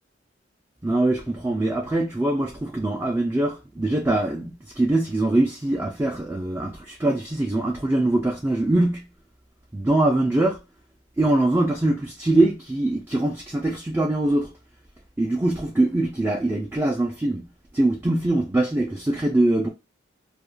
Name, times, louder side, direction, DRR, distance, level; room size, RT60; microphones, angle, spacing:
voice 1, 0.8-9.1 9.7-10.6 11.2-14.5 15.2-17.4 17.7-19.7, right 2 dB, 10° right, 0.3 m, -23 dB
2.3 x 2.2 x 3.1 m
head